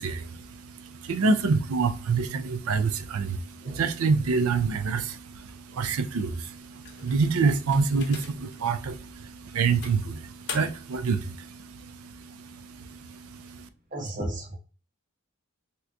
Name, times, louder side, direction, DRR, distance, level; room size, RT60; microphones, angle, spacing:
voice 1, 0.0-13.7, right 4 dB, 70° right, 0.4 m, -27 dB
voice 2, 3.6-3.9 5.7-5.8 13.9-14.6, right 1 dB, 40° right, 0.9 m, -35 dB
sound 1, 6.8-8.6 9.1-9.2 9.8-11.0, left 5 dB, 50° left, 0.8 m, -42 dB
3.3 x 2.9 x 2.5 m
head